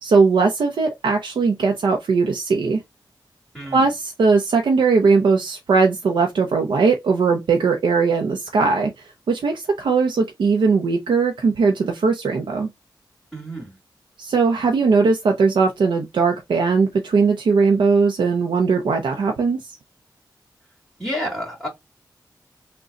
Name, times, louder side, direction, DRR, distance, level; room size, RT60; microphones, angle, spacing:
voice 1, 0.0-2.8 3.7-12.7 14.2-19.8, right 4 dB, 90° right, 0.6 m, -19 dB
voice 2, 3.5-3.9 13.3-13.7 21.0-21.7, equal, ahead, 2.0 m, -29 dB
3.7 x 2.2 x 3.9 m
cardioid pair, 55°, 8 cm